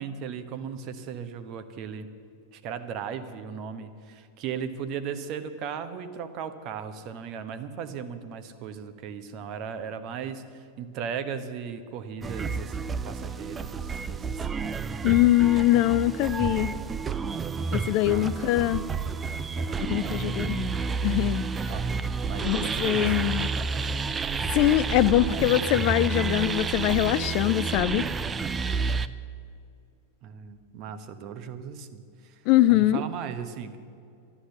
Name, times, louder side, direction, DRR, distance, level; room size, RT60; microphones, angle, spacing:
voice 1, 0.0-2.1 2.5-14.6 18.1-18.5 19.6-20.4 21.7-21.9 22.3-24.0 30.2-32.3 32.7-33.8, right 7 dB, 40° right, 10 dB, 1.1 m, -37 dB
sound 1, 12.2-29.1, right 5 dB, 20° right, 0.5 m, -30 dB
voice 2, 15.0-16.7 17.7-18.8 19.8-20.7 21.0-21.5 22.4-23.5 24.5-28.0 32.5-33.0, left 15 dB, 45° left, 16 dB, 0.4 m, -23 dB
13.0 x 11.0 x 7.9 m, 2.5 s
figure-of-eight pair, 90°, 0 cm